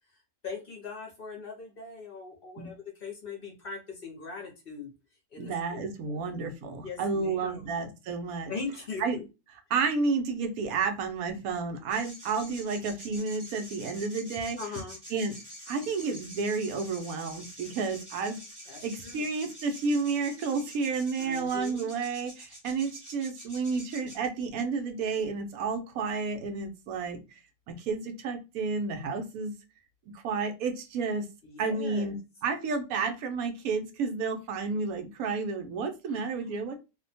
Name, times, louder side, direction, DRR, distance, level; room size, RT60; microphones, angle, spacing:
voice 1, 0.4-4.9 5.3-5.8 6.1-6.2 6.8-7.7 8.5-9.2 14.6-15.0 18.7-19.2 21.2-21.9 31.4-32.2 36.1-36.3, left 4 dB, 50° left, 0 dB, 0.8 m, -40 dB
voice 2, 5.4-8.5 9.0-9.2 9.7-14.6 15.1-15.3 15.7-18.4 18.8-27.2 27.7-29.5 30.1-31.3 31.6-32.2 32.4-36.8, right 4 dB, 90° right, 5 dB, 1.1 m, -31 dB
sound 1, 11.9-24.2, equal, 20° right, 0.7 m, -47 dB
2.7 x 2.1 x 2.6 m, 0.27 s
omnidirectional pair, 1.5 m